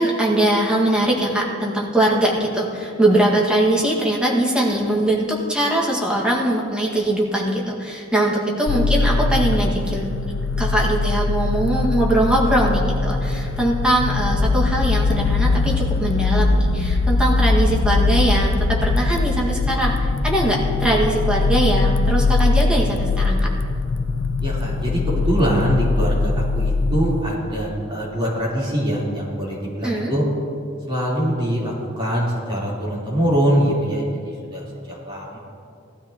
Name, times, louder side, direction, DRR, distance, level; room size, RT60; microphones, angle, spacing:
voice 1, 0.0-10.1 10.6-23.5 29.8-30.1, right 1 dB, 5° right, -3 dB, 1.7 m, -21 dB
sound 1, 8.7-27.3, left 3 dB, 70° left, 0.5 m, -21 dB
voice 2, 24.4-30.2 30.9-34.1 34.5-35.4, equal, 25° right, -7 dB, 3.5 m, -23 dB
18.0 x 13.0 x 2.9 m, 2.5 s
head